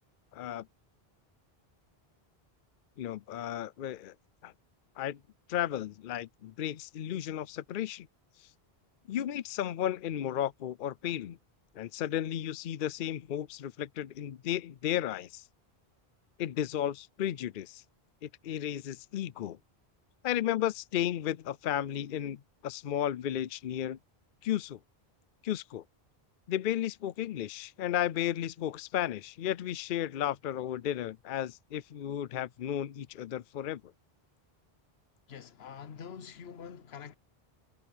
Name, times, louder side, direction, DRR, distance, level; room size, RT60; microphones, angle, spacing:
voice 1, 0.3-0.7 3.0-4.1 4.4-4.5 5.0-5.2 5.5-8.1 9.1-11.4 11.7-15.4 16.4-17.8 18.2-19.6 20.2-24.0 24.4-24.8 25.4-25.8 26.5-33.8, left 11 dB, 60° left, 0.7 m, -34 dB
voice 2, 35.3-37.2, left 7 dB, 80° left, 1.1 m, -45 dB
omnidirectional pair, 1.0 m